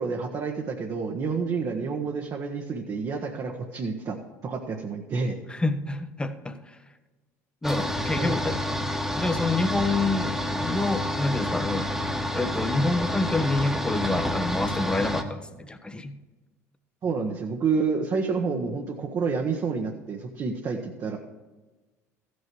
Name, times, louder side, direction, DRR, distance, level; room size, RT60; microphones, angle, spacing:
voice 1, 0.0-4.2 4.4-5.4 8.0-8.4 17.0-21.2, right 5 dB, 40° right, 1 dB, 1.2 m, -29 dB
voice 2, 5.5-6.8 7.6-8.9 9.2-11.9 12.3-16.1, left 2 dB, 10° left, 9 dB, 1.0 m, -27 dB
sound 1, 7.6-15.2, equal, 5° right, 1.4 m, -29 dB
14.5 x 6.4 x 4.7 m, 1.2 s
hypercardioid pair, 70°, 8 cm